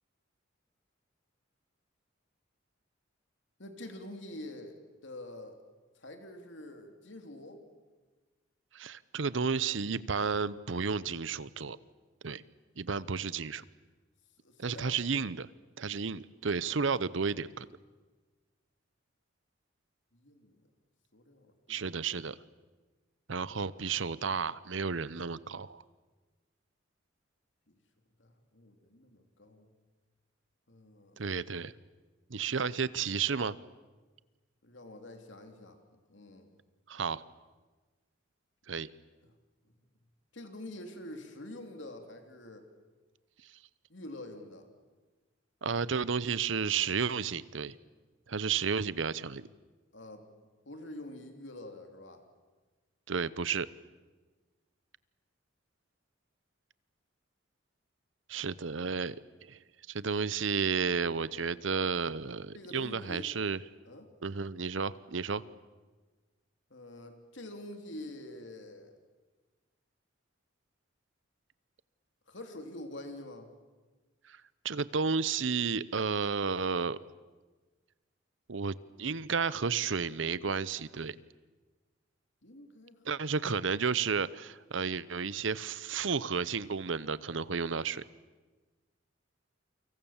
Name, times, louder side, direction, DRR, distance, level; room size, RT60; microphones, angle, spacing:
voice 1, 3.6-4.8 5.0-5.6 5.9-7.6 14.4-15.0 20.1-20.7 21.1-22.1 27.7-27.8 28.2-29.7 30.7-31.2 34.6-35.8 36.1-36.5 40.3-42.7 43.9-44.7 49.9-50.2 50.7-52.2 62.5-63.3 63.8-64.1 66.7-68.9 72.3-73.5 82.4-83.0, left 1 dB, 65° left, 5 dB, 3.0 m, -46 dB
voice 2, 8.7-11.8 12.2-12.4 12.8-13.6 14.6-15.5 15.8-17.7 21.7-22.4 23.3-25.8 31.2-31.7 32.3-33.5 36.9-37.2 38.7-38.9 45.6-47.8 48.3-49.5 53.1-53.7 58.3-59.2 59.4-59.6 59.9-63.6 64.2-65.4 74.3-74.4 74.6-77.0 78.5-81.2 83.0-88.0, right 5 dB, 70° right, 18 dB, 0.8 m, -32 dB
29.0 x 25.0 x 7.3 m, 1.3 s
head